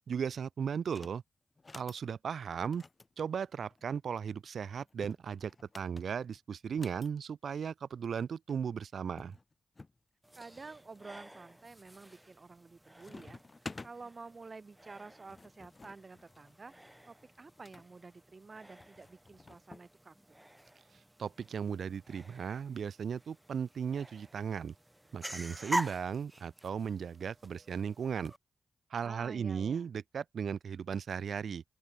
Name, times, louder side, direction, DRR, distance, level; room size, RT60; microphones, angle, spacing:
voice 1, 0.1-1.2 1.7-2.8 3.2-9.4 21.2-24.7 25.1-28.3 28.9-31.6, right 7 dB, 70° right, 1.0 m, -36 dB
sound 1, 0.9-1.2 1.6-2.0 2.6-4.0 4.8-7.1 8.2-8.3 8.5-8.6 9.2-10.0 10.5-11.0 11.6-12.0 12.3-12.7 13.0-13.9 14.9-17.9 18.8-19.9, left 3 dB, 35° left, 1.8 m, -51 dB
sound 2, 10.2-28.4, right 1 dB, 10° right, 1.4 m, -46 dB
voice 2, 10.4-16.7 17.1-20.4 29.0-29.9, right 4 dB, 40° right, 5.3 m, -50 dB
open air
cardioid pair, 70°, 0 cm